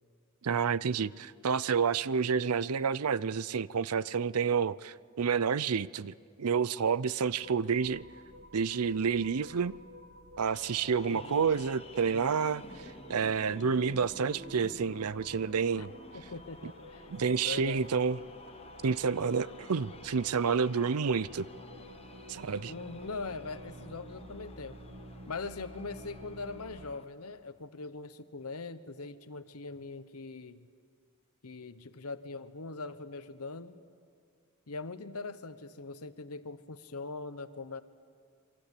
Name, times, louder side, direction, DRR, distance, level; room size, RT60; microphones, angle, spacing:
voice 1, 0.4-8.1 8.5-9.8 10.4-15.9 17.1-18.2 18.8-21.5 22.3-22.7, right 6 dB, 80° right, 0.6 m, -29 dB
sound 1, 7.4-27.0, equal, 55° right, 1.4 m, -51 dB
sound 2, 10.5-27.1, left 2 dB, 25° left, 1.3 m, -52 dB
voice 2, 11.1-11.4 15.8-15.9 16.1-17.1 17.4-17.9 22.7-24.8 25.3-30.7 31.4-33.8 34.7-37.8, left 3 dB, 80° left, 1.2 m, -41 dB
28.0 x 23.5 x 8.4 m
head